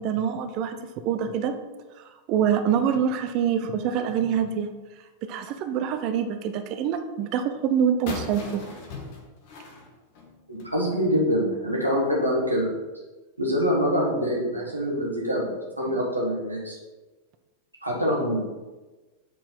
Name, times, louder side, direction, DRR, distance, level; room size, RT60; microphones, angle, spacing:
voice 1, 0.0-1.6 2.3-4.7 5.2-8.6, right 8 dB, 40° right, 9 dB, 0.6 m, -25 dB
sound 1, 8.1-10.8, left 3 dB, 45° left, 1.2 m, -38 dB
voice 2, 10.5-12.7 13.4-16.8 17.8-18.4, equal, 85° right, -4 dB, 1.6 m, -25 dB
7.7 x 4.1 x 3.9 m, 1.2 s
figure-of-eight pair, 90°, 0 cm